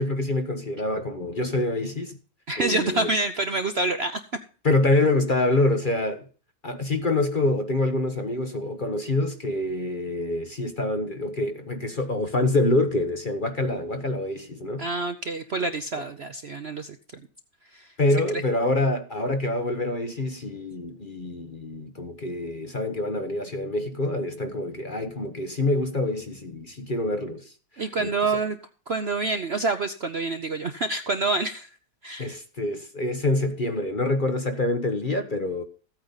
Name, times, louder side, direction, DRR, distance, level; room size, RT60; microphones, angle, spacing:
voice 1, 0.0-2.2 2.6-3.1 4.6-6.2 6.6-14.8 18.0-27.5 28.0-28.4 32.2-35.6, left 2 dB, 35° left, 1.1 m, -26 dB
voice 2, 2.5-4.2 14.8-17.0 17.7-17.9 27.8-28.6 28.9-31.7 32.0-32.4, right 3 dB, 50° right, 0.8 m, -27 dB
15.0 x 8.8 x 4.0 m
omnidirectional pair, 1.8 m